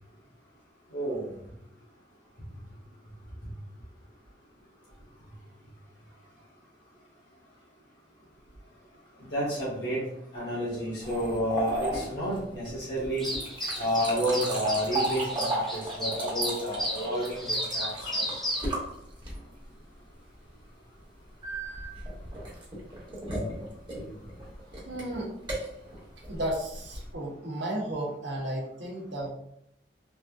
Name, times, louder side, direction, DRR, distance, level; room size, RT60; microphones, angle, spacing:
voice 1, 0.9-1.3 9.3-10.0 10.3-13.3 13.8-18.3, equal, 65° left, -7 dB, 1.1 m, -30 dB
sound 1, 11.0-19.6 21.4-27.1, right 1 dB, 25° right, 0.9 m, -35 dB
sound 2, 13.2-18.7, equal, ahead, 0.7 m, -34 dB
voice 2, 24.9-25.3 26.3-29.3, right 1 dB, 85° right, -2 dB, 0.9 m, -33 dB
3.3 x 2.6 x 2.3 m, 0.77 s
head